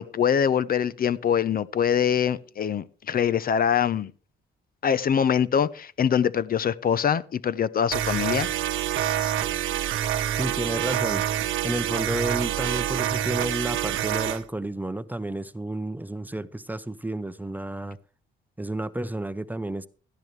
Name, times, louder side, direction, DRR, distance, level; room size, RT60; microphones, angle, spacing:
voice 1, 0.0-4.1 4.8-8.5, left 8 dB, 50° left, 0.7 m, -24 dB
sound 1, 7.9-14.4, right 11 dB, 80° right, 1.0 m, -27 dB
voice 2, 10.4-11.3 11.6-18.0 18.6-19.9, right 1 dB, 10° right, 0.7 m, -31 dB
17.5 x 12.5 x 3.3 m
cardioid pair, 90°, 20 cm